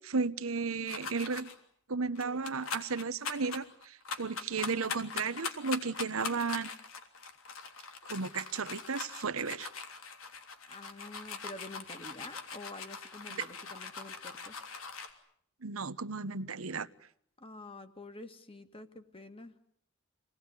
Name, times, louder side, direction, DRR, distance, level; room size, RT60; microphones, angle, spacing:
voice 1, 0.0-1.5 1.9-6.7 8.1-9.7 15.6-16.9, right 4 dB, 85° right, 1.1 m, -34 dB
sound 1, 0.9-1.5 2.2-15.1, left 5 dB, 85° left, 3.3 m, -42 dB
voice 2, 10.7-14.6 17.4-19.5, left 2 dB, 25° left, 2.1 m, -48 dB
27.0 x 20.0 x 9.7 m
head